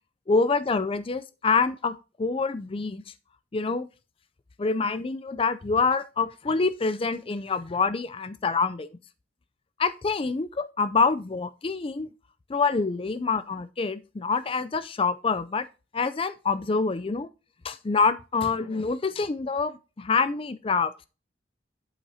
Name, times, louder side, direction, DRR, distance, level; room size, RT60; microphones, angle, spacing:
voice 1, 0.3-3.0 3.5-3.9 4.6-9.0 9.8-12.1 12.5-15.7 15.9-17.3 17.6-21.1, left 4 dB, 30° left, 0.4 m, -26 dB
8.8 x 7.9 x 2.8 m
head